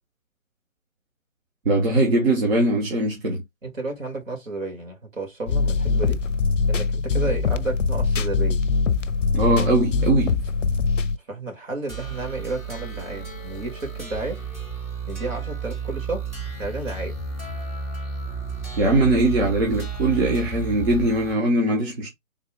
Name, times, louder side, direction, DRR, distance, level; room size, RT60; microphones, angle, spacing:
voice 1, 1.6-3.4 9.3-10.4 18.8-22.1, right 2 dB, 50° right, 1.1 m, -21 dB
voice 2, 3.6-6.2 6.7-8.6 11.3-14.4 14.7-16.3 16.6-17.1, right 2 dB, 70° right, 2.2 m, -32 dB
sound 1, 5.5-11.2, left 4 dB, 65° left, 0.5 m, -22 dB
sound 2, 11.9-21.3, right 5 dB, 10° right, 0.8 m, -32 dB
3.6 x 2.3 x 3.6 m
figure-of-eight pair, 140°, 41 cm